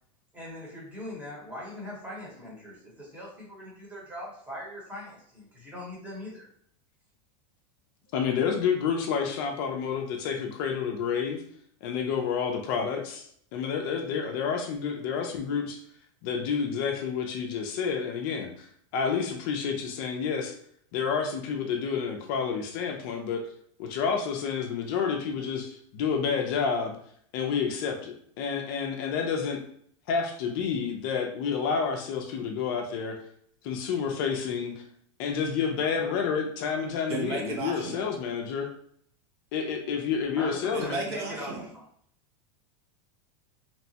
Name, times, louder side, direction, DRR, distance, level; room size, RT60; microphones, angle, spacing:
voice 1, 0.3-6.5 40.3-41.8, left 1 dB, 10° right, -5 dB, 0.9 m, -41 dB
voice 2, 8.1-11.4 11.8-13.0 13.5-15.8 16.2-18.7 18.9-20.5 20.9-23.4 23.8-27.0 27.3-29.6 30.1-33.2 33.6-34.7 35.2-38.7 39.5-41.0, left 6 dB, 45° left, 3 dB, 0.4 m, -29 dB
voice 3, 37.1-38.1 40.7-41.6, right 2 dB, 55° right, 0 dB, 0.9 m, -33 dB
2.9 x 2.1 x 2.7 m, 0.64 s
supercardioid pair, 160°, 16 cm